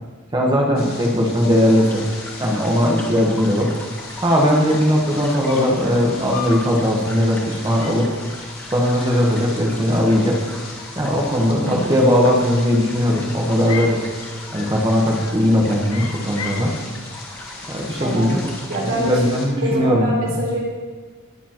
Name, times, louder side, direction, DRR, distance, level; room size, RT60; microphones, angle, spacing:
voice 1, 0.3-2.0 2.4-3.7 4.2-8.1 8.7-10.4 11.0-14.0 14.5-16.7 17.7-18.4 18.8-20.1, equal, 20° right, -1 dB, 1.2 m, -18 dB
sound 1, 0.7-19.5, left 3 dB, 40° left, 2.8 m, -38 dB
sound 2, 1.7-18.8, left 1 dB, 10° left, 1.9 m, -40 dB
sound 3, 4.7-5.0 5.5-5.9 6.3-6.7 7.1-7.4 7.8-8.1 8.9-9.8 10.1-10.8 12.0-12.6 13.1-14.0 14.5-14.9 15.2-15.5 15.9-16.7, left 5 dB, 75° left, 1.0 m, -36 dB
voice 2, 11.6-12.0 18.0-18.4 18.7-19.3 19.6-20.7, right 1 dB, 65° right, -5 dB, 3.9 m, -24 dB
20.5 x 7.1 x 3.0 m, 1.5 s
head